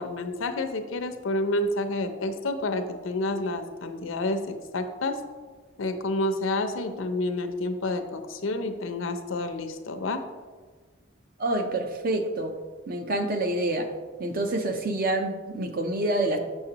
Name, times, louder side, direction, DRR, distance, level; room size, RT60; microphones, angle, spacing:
voice 1, 0.0-5.2 5.8-10.2, left 2 dB, 90° left, 7 dB, 0.6 m, -29 dB
voice 2, 11.4-12.5 12.9-13.9 14.2-16.4, right 1 dB, 45° right, 5 dB, 0.6 m, -27 dB
6.6 x 6.3 x 2.9 m, 1.4 s
head